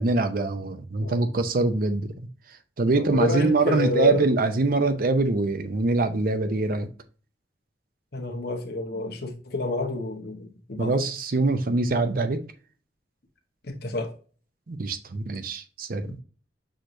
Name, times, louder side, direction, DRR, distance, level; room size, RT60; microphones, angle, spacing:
voice 1, 0.0-2.3 2.8-6.9 10.8-12.4 14.7-16.2, right 3 dB, 50° right, 0.6 m, -24 dB
voice 2, 1.0-1.4 2.9-4.3 8.1-11.0 13.7-14.1, left 2 dB, 60° left, 1.0 m, -29 dB
6.3 x 3.1 x 2.6 m
head